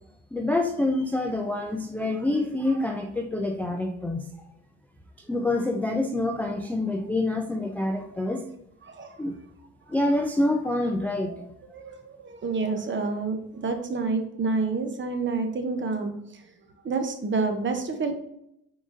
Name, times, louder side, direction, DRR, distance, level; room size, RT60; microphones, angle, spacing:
voice 1, 0.3-4.2 5.3-8.5 9.2-9.3 9.9-11.5, left 2 dB, 5° left, 4 dB, 0.4 m, -26 dB
voice 2, 8.8-9.2 11.3-11.4 11.7-16.2 16.8-18.1, right 4 dB, 35° right, 6 dB, 0.8 m, -28 dB
4.6 x 3.9 x 2.5 m, 0.78 s
supercardioid pair, 75°, 35 cm